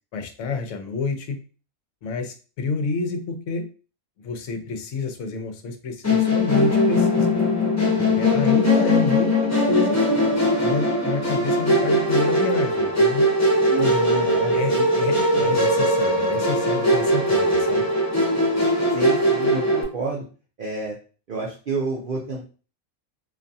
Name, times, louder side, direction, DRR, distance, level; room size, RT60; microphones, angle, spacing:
voice 1, 0.1-1.4 2.0-3.7 4.2-7.3 8.0-10.0 10.6-13.3 14.5-17.8, left 4 dB, 70° left, 6 dB, 0.8 m, -28 dB
Musical instrument, 6.0-19.8, left 1 dB, 25° left, 0.4 m, -20 dB
voice 2, 13.7-15.0 15.3-15.6 18.9-20.2 20.6-21.0 21.3-22.4, right 3 dB, 65° right, -3 dB, 0.5 m, -29 dB
2.5 x 2.3 x 2.6 m, 0.36 s
omnidirectional pair, 1.5 m